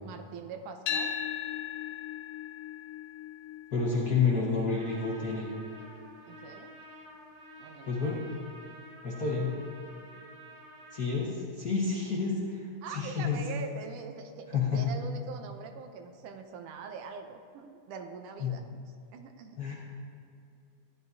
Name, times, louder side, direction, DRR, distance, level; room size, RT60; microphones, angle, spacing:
voice 1, 0.0-1.1 6.3-6.8 7.6-8.2 12.8-18.8 19.1-19.6, right 5 dB, 75° right, 6 dB, 2.0 m, -43 dB
sound 1, 0.9-9.0, left 9 dB, 85° left, 2.2 m, -40 dB
voice 2, 3.7-5.5 7.9-8.2 9.0-9.5 10.9-13.4 14.5-14.9 18.4-18.5 19.6-19.7, left 5 dB, 60° left, -6 dB, 1.0 m, -29 dB
Trumpet, 4.7-11.2, right 2 dB, 55° right, 2.9 m, -51 dB
14.5 x 10.5 x 2.7 m, 2.6 s
omnidirectional pair, 3.8 m